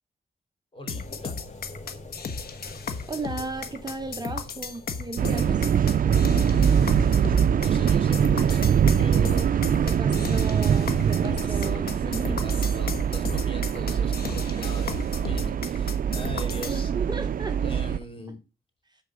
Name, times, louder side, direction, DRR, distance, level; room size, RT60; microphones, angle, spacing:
voice 1, 0.7-1.4 5.3-5.7 6.0-10.3 11.3-16.9 17.6-18.4, left 1 dB, 35° left, 3.1 m, -41 dB
sound 1, 0.9-16.8, left 5 dB, 85° left, 1.2 m, -35 dB
sound 2, 0.9-7.1, left 2 dB, 50° left, 2.5 m, -45 dB
voice 2, 3.1-5.8 9.8-12.5 14.2-14.3 16.7-17.6, right 3 dB, 25° right, 1.1 m, -35 dB
sound 3, 5.2-18.0, right 8 dB, 65° right, 0.4 m, -23 dB
12.5 x 4.2 x 4.9 m
wide cardioid pair, 120°, 15 cm